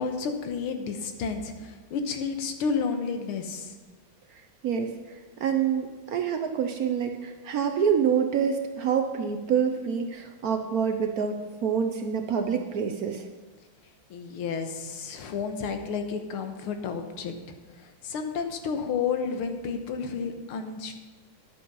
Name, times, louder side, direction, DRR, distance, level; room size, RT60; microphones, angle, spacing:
voice 1, 0.0-3.7 14.1-17.3 17.8-20.9, left 5 dB, 90° left, 6 dB, 1.9 m, -31 dB
voice 2, 5.4-11.4 11.6-13.3, right 7 dB, 75° right, 6 dB, 0.8 m, -26 dB
11.0 x 8.6 x 5.4 m, 1.3 s
omnidirectional pair, 2.3 m